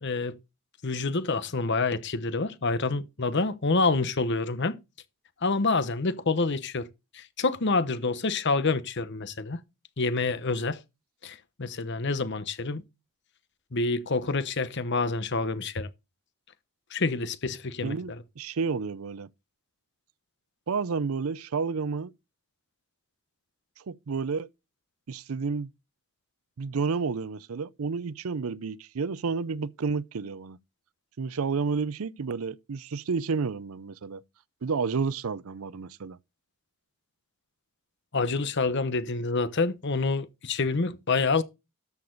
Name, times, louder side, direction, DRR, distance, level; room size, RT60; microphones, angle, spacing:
voice 1, 0.0-0.4 0.8-4.8 5.4-6.9 7.1-9.6 10.0-10.8 11.2-12.8 13.7-15.9 16.9-18.2 38.1-41.4, left 3 dB, 55° left, 1.0 m, -27 dB
voice 2, 17.8-19.3 20.7-22.1 23.8-24.5 25.1-25.7 26.6-30.6 31.2-34.2 34.6-36.2, right 5 dB, 75° right, 0.5 m, -30 dB
13.0 x 6.7 x 3.9 m
head